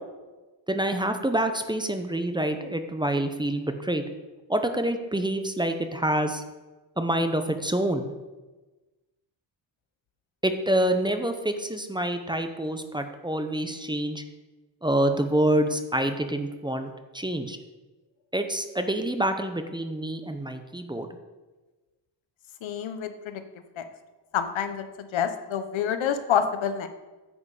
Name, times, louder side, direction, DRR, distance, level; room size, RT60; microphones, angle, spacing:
voice 1, 0.7-4.0 4.5-6.4 7.0-8.1 10.4-14.2 14.8-17.6 18.3-21.1, right 1 dB, 10° right, 7 dB, 0.7 m, -27 dB
voice 2, 22.6-23.4 23.8-23.9 24.3-26.9, left 8 dB, 80° left, 9 dB, 1.0 m, -28 dB
10.0 x 7.5 x 4.9 m, 1.2 s
cardioid pair, 110°, 46 cm